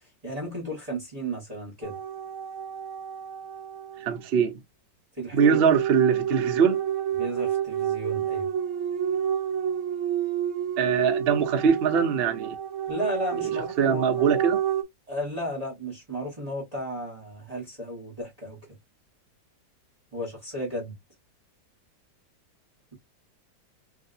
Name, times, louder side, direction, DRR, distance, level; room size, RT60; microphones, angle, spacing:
voice 1, 0.2-2.0 5.2-5.6 7.2-8.5 12.9-14.2 15.1-18.6 20.1-20.9, equal, 20° right, 1.4 m, -34 dB
sound 1, 1.8-4.2 5.4-14.8, right 9 dB, 60° right, 0.8 m, -29 dB
voice 2, 4.0-4.6 5.3-6.8 10.8-12.6 13.8-14.6, right 6 dB, 80° right, 0.5 m, -22 dB
3.3 x 2.7 x 2.6 m
omnidirectional pair, 2.0 m